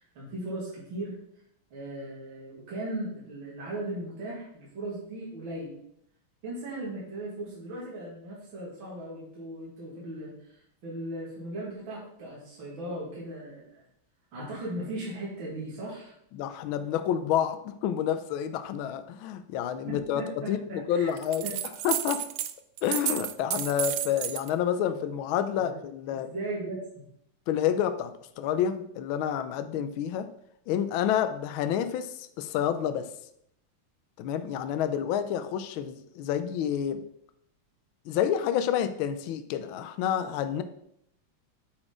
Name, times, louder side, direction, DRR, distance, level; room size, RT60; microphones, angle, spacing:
voice 1, 0.2-1.2 1.7-5.7 6.4-13.8 14.3-16.1 19.8-21.1 21.4-21.5 25.6-25.7 26.1-26.8, right 1 dB, 65° right, -5 dB, 2.7 m, -37 dB
voice 2, 16.3-21.5 21.8-22.2 22.8-26.3 27.5-30.3 30.7-33.1 34.2-37.0 38.1-40.6, left 9 dB, 75° left, 11 dB, 1.4 m, -29 dB
sound 1, 21.2-22.5 22.8-24.5, right 12 dB, 80° right, 0.9 m, -31 dB
8.7 x 4.3 x 4.9 m, 0.71 s
omnidirectional pair, 2.4 m